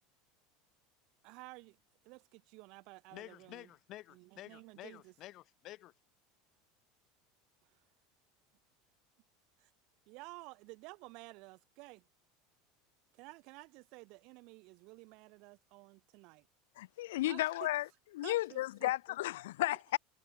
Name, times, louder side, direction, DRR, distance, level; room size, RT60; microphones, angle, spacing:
voice 1, 1.2-3.7 4.1-5.1 7.6-7.8 9.6-9.7 10.1-12.1 13.1-16.5 17.2-17.7 18.2-18.9, right 26 dB, 60° right, 6.7 m, -53 dB
voice 2, 3.1-5.9, left 15 dB, 50° left, 4.5 m, -51 dB
voice 3, 16.8-17.8 18.1-20.0, left 16 dB, 85° left, 0.3 m, -33 dB
supercardioid pair, 115°, 0 cm